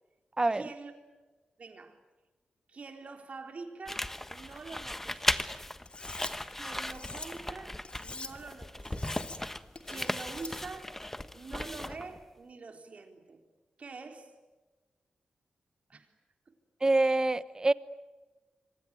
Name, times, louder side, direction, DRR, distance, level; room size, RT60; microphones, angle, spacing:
voice 1, 0.5-0.9 1.6-2.0 2.7-5.6 6.5-9.3 9.8-11.0 11.3-13.4 13.8-14.3 15.9-16.1 16.5-16.6, right 4 dB, 50° right, 3.9 m, -46 dB
sound 1, 3.8-12.2, left 1 dB, 10° left, 1.3 m, -37 dB
Cutlery silverware, 5.9-6.3 6.8-7.3 7.8-8.3 8.8-9.4 9.8-10.5, left 3 dB, 35° left, 2.7 m, -44 dB
voice 2, 16.8-17.7, right 2 dB, 25° right, 1.0 m, -25 dB
26.5 x 24.5 x 9.1 m
wide cardioid pair, 95°, 3 cm